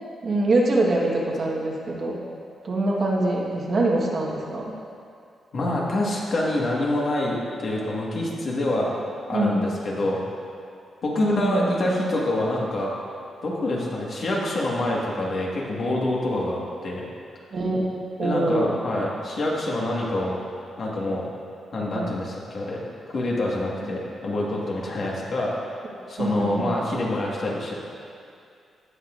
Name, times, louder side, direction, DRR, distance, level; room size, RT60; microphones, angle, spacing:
voice 1, 0.2-2.2 2.6-4.7 9.3-9.7 11.2-11.7 17.5-18.7 21.9-22.1 26.2-26.7, right 2 dB, 50° right, -2 dB, 1.3 m, -24 dB
voice 2, 5.5-8.9 9.3-10.2 11.0-12.9 13.4-17.0 18.2-20.4 20.8-21.2 21.7-22.8 23.1-25.7 26.1-27.7, left 1 dB, 55° left, -4 dB, 1.6 m, -26 dB
17.0 x 5.8 x 2.5 m, 2.4 s
cardioid pair, 110°, 0 cm